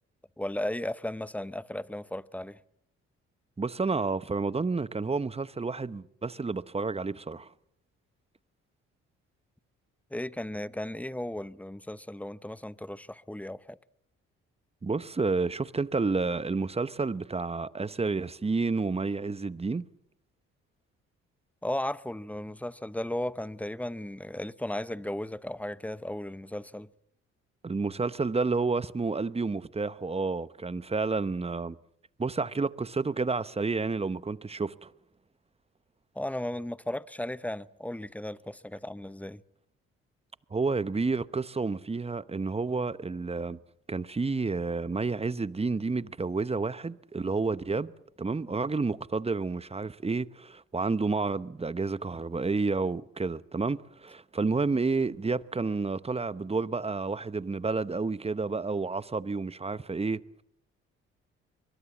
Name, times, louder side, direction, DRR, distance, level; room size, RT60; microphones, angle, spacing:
voice 1, 0.4-2.6 10.1-13.8 21.6-26.9 36.1-39.4, left 1 dB, 5° left, 0.8 m, -35 dB
voice 2, 3.6-7.5 14.8-19.8 27.6-31.8 32.2-34.9 40.5-43.6 43.9-47.9 48.2-60.4, right 4 dB, 20° right, 0.9 m, -30 dB
23.5 x 21.5 x 7.3 m
supercardioid pair, 60°, 30 cm